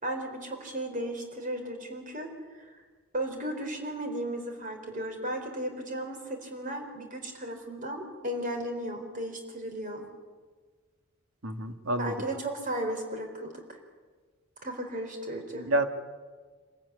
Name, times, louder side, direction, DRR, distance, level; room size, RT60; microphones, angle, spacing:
voice 1, 0.0-2.3 2.6-2.7 3.1-10.0 12.0-13.8 14.6-15.6, right 1 dB, 40° right, 4 dB, 4.3 m, -35 dB
voice 2, 11.4-12.1 15.5-15.9, right 1 dB, 75° right, 7 dB, 1.9 m, -28 dB
26.0 x 15.5 x 9.7 m, 1.5 s
head